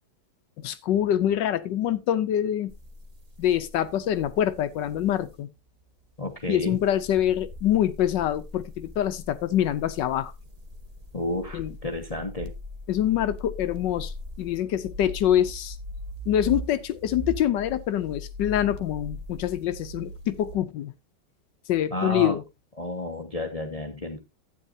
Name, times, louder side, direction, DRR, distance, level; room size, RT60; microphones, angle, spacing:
voice 1, 0.6-2.7 3.4-5.5 6.5-10.3 11.5-11.7 12.9-15.8 16.3-20.9 21.7-22.4, left 11 dB, 80° left, 1.3 m, -25 dB
sound 1, 2.7-5.3 6.5-20.5, equal, 25° right, 1.1 m, -40 dB
voice 2, 6.2-6.8 11.1-12.5 21.9-22.4 22.8-24.2, left 1 dB, 25° left, 1.0 m, -31 dB
12.0 x 9.3 x 2.6 m
omnidirectional pair, 1.9 m